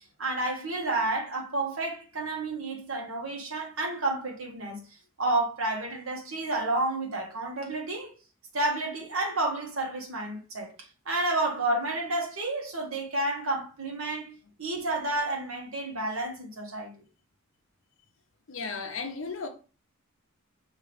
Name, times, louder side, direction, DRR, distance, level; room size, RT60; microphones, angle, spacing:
voice 1, 0.2-4.8 5.2-8.1 8.5-10.7 11.0-16.9, right 2 dB, 70° right, 1.3 m, -30 dB
voice 2, 18.5-19.5, left 4 dB, 65° left, 0.7 m, -35 dB
5.5 x 2.8 x 3.3 m
head